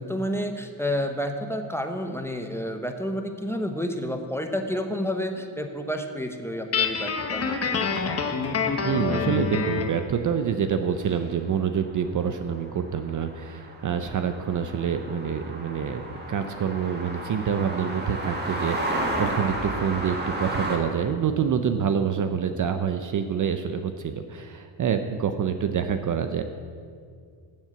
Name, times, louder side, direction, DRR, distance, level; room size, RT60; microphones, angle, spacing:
voice 1, 0.0-7.6, equal, 5° left, 5 dB, 0.7 m, -30 dB
Guitar, 6.7-10.0, left 5 dB, 30° left, 1.0 m, -26 dB
sound 1, 8.0-8.1 8.4-8.5 11.1-11.2 11.5-11.7 12.0-20.8, right 1 dB, 20° right, 1.6 m, -32 dB
voice 2, 8.8-26.4, right 7 dB, 40° right, 8 dB, 0.5 m, -27 dB
7.4 x 7.2 x 7.9 m, 2.2 s
cardioid pair, 95°, 50 cm